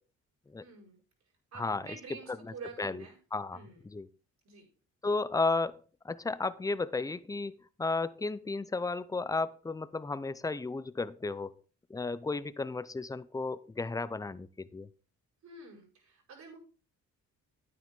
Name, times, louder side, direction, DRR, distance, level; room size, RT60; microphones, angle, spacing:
voice 1, 0.6-1.0 1.5-3.2 3.5-3.8 4.4-4.7 15.4-16.6, right 5 dB, 65° right, -3 dB, 5.5 m, -48 dB
voice 2, 1.5-1.9 2.4-3.0 3.3-4.1 5.0-5.8 6.0-11.6 11.9-14.9, left 3 dB, 10° left, 16 dB, 0.6 m, -34 dB
9.7 x 9.2 x 3.7 m, 0.37 s
cardioid pair, 90°, 30 cm